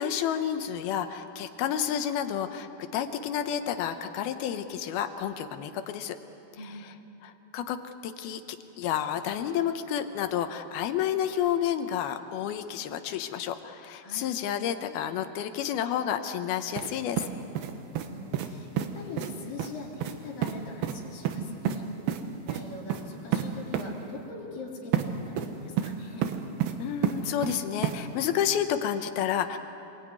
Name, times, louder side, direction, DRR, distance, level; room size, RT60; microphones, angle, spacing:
voice 1, 0.0-6.2 7.2-8.4 8.8-17.2 26.8-29.6, left 9 dB, 80° left, 8 dB, 2.7 m, -30 dB
sound 1, 16.8-16.9 17.2-18.1 18.3-18.5 18.8-18.9 19.2-19.3 19.6-19.7 20.0-20.1 20.4-20.5 20.8-21.0 21.3-21.8 22.1-22.2 22.5-22.6 22.9-23.0 23.3-23.4 23.7-23.8 24.9-25.1 25.4-25.9 26.2-26.7 27.0-27.6 27.8-28.0, right 11 dB, 75° right, 3.0 m, -28 dB
voice 2, 17.8-21.9 22.4-26.3, left 2 dB, 60° left, -5 dB, 5.2 m, -41 dB
26.5 x 21.5 x 9.5 m, 2.9 s
omnidirectional pair, 4.5 m